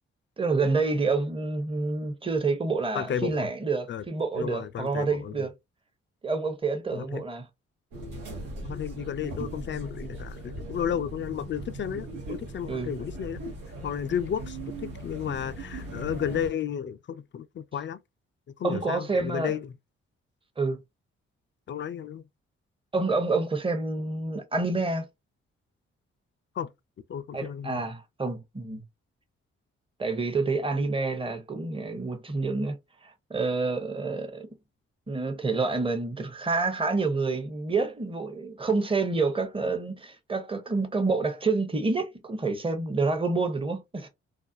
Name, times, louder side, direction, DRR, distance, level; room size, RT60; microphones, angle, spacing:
voice 1, 0.4-5.5 6.2-7.5 12.7-13.0 18.6-19.5 20.6-20.8 22.9-25.1 27.3-28.8 30.0-32.8 33.0-34.5 35.1-44.1, right 3 dB, 15° right, 0.8 m, -28 dB
voice 2, 2.9-3.5 3.9-4.0 4.4-5.5 6.9-7.2 8.6-13.4 13.8-18.0 18.6-19.7 21.7-22.3 26.6-26.7 27.1-27.9, left 8 dB, 40° left, 0.4 m, -33 dB
sound 1, 7.9-16.5, right 1 dB, 85° right, 0.9 m, -39 dB
2.4 x 2.1 x 2.5 m
hypercardioid pair, 40°, 30 cm